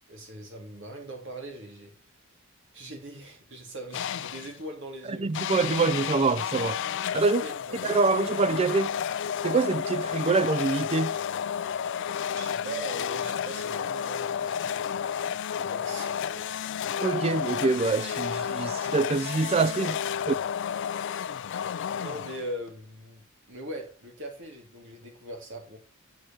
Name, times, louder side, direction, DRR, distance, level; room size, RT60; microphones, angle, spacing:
voice 1, 0.1-1.9 2.7-5.4 7.1-8.0 12.3-15.1 15.5-16.6 19.8-20.0 22.0-25.8, right 1 dB, 55° right, 2.4 m, -41 dB
sound 1, 3.9-4.6 5.3-22.7, left 8 dB, 55° left, 0.3 m, -31 dB
voice 2, 5.2-6.8 7.1-7.4 7.8-8.9 9.4-11.1 17.0-19.9, right 4 dB, 25° right, 0.3 m, -25 dB
7.7 x 6.5 x 4.3 m
head